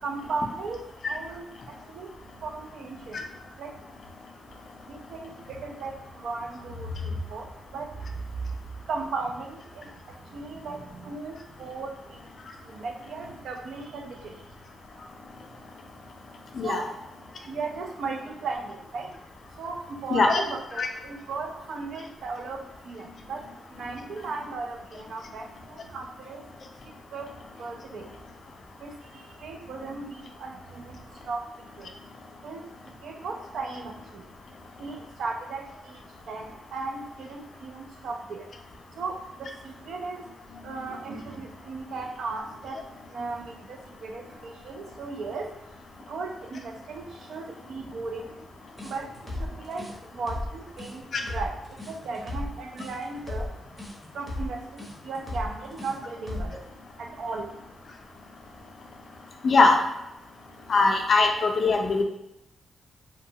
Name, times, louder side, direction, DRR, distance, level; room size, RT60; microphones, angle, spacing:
voice 1, 0.0-1.5 1.9-2.1 2.4-3.2 3.6-3.7 4.9-7.5 7.7-7.9 8.9-9.9 10.3-12.2 12.7-14.3 16.6-16.9 17.5-19.1 19.6-23.4 23.8-26.4 27.1-27.3 27.6-28.1 28.8-29.0 29.4-31.4 31.8-31.9 32.4-32.6 33.0-34.2 34.8-36.0 36.3-38.5 39.0-40.3 40.6-42.8 43.1-45.5 46.1-48.3 48.8-49.1 49.4-51.5 51.9-53.5 54.1-56.6 57.0-57.5, right 3 dB, 75° right, 3 dB, 0.3 m, -36 dB
voice 2, 20.1-20.4 20.8-20.9 51.1-51.2 59.4-59.8 60.7-62.0, left 3 dB, 50° left, 3 dB, 0.4 m, -21 dB
sound 1, 48.8-56.6, left 1 dB, 5° right, 0.7 m, -36 dB
2.7 x 2.2 x 2.7 m, 0.87 s
wide cardioid pair, 140°, 0 cm